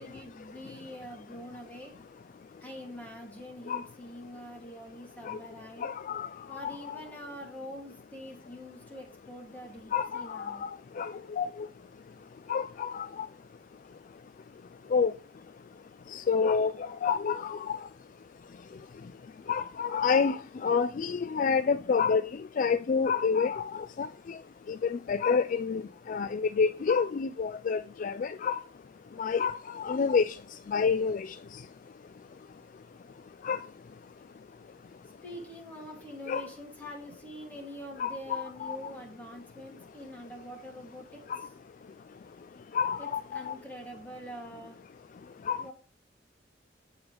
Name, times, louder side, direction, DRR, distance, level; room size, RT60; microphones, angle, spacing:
voice 1, 0.0-1.9 2.6-5.9 6.5-10.7 35.2-41.5 43.0-44.8 45.6-45.7, equal, 10° left, 2.8 m, -45 dB
voice 2, 5.8-6.3 6.6-7.0 9.9-10.7 11.0-11.7 12.5-13.3 14.9-15.1 16.1-17.8 19.5-22.2 22.6-24.4 24.7-25.8 26.1-28.6 29.2-30.3 30.7-31.4 33.4-33.6 36.3-36.5 38.0-38.8 41.3-41.5 42.7-43.5 45.5-45.6, left 5 dB, 45° left, 0.3 m, -28 dB
7.8 x 7.3 x 3.4 m
head